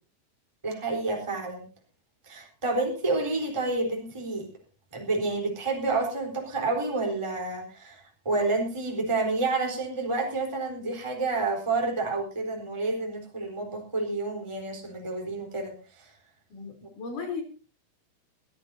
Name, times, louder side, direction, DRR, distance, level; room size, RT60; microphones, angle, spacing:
voice 1, 0.6-1.6 2.2-4.5 4.9-16.1, right 3 dB, 5° right, 1 dB, 3.7 m, -29 dB
voice 2, 16.5-17.4, left 4 dB, 50° left, 5 dB, 4.8 m, -35 dB
22.0 x 15.0 x 2.8 m, 0.34 s
omnidirectional pair, 5.0 m